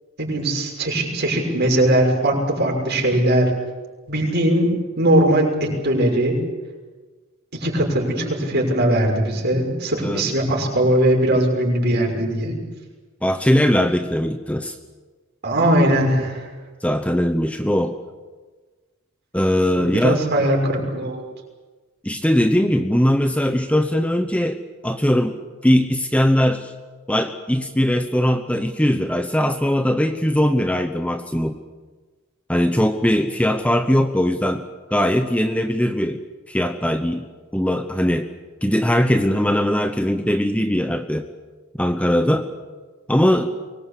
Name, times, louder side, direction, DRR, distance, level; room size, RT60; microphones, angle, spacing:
voice 1, 0.2-3.5 4.1-4.7 5.0-6.4 7.5-12.5 15.4-16.5 19.8-21.2, right 1 dB, 50° right, 1 dB, 6.2 m, -20 dB
voice 2, 13.2-14.8 16.8-18.0 19.3-20.2 22.0-26.7 27.1-31.6 32.5-34.6 34.9-36.2 36.5-37.3 37.5-38.3 38.6-41.3 41.8-42.5 43.1-43.5, equal, 5° left, 7 dB, 1.0 m, -20 dB
24.0 x 21.0 x 8.5 m, 1.3 s
head